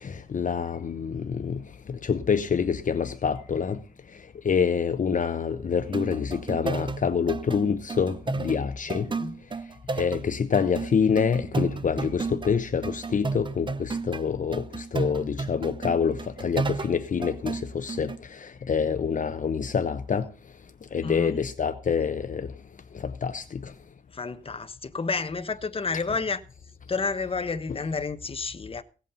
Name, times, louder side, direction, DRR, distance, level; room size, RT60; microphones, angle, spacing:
voice 1, 0.0-1.6 1.9-3.8 4.4-9.1 10.0-20.3 20.9-22.5 22.9-23.7, left 6 dB, 50° left, 0.9 m, -26 dB
sound 1, 5.8-12.6 12.8-14.2 14.5-18.2, right 4 dB, 30° right, 0.7 m, -32 dB
voice 2, 9.0-9.3 21.0-21.4 24.1-26.4 26.9-28.8, left 4 dB, 35° left, 1.1 m, -30 dB
17.0 x 8.3 x 5.6 m
wide cardioid pair, 115°, 17 cm